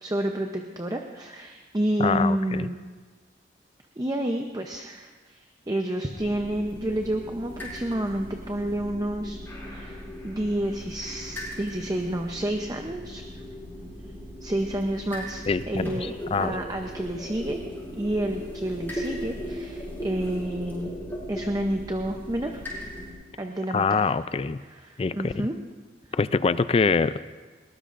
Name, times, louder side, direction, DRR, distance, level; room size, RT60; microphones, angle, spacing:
voice 1, 0.0-2.8 4.0-9.4 9.7-13.2 14.4-16.1 16.4-17.6 18.0-20.9 21.3-22.7 23.4-24.0 24.7-25.5 26.7-26.9, right 1 dB, 20° right, 3 dB, 0.7 m, -29 dB
voice 2, 2.0-2.7 15.5-16.6 23.7-24.6 25.0-25.5 26.1-27.2, left 4 dB, 30° left, 14 dB, 0.3 m, -25 dB
sound 1, 6.2-23.1, equal, 10° left, 4.9 m, -38 dB
21.0 x 19.0 x 2.5 m, 1.4 s
head